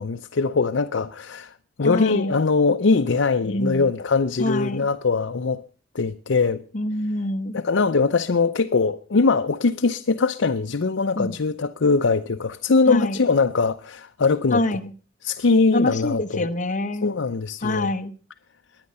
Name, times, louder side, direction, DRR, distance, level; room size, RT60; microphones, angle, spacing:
voice 1, 0.0-1.5 1.8-5.6 5.9-6.6 7.5-14.6 15.2-16.5 17.0-17.9, left 4 dB, 75° left, 0.6 m, -21 dB
voice 2, 1.8-2.3 3.5-3.9 4.4-4.9 6.7-7.6 11.2-11.3 12.9-13.2 14.5-14.9 15.7-17.1 17.6-18.1, left 1 dB, 40° left, 1.1 m, -25 dB
21.0 x 9.7 x 5.5 m
head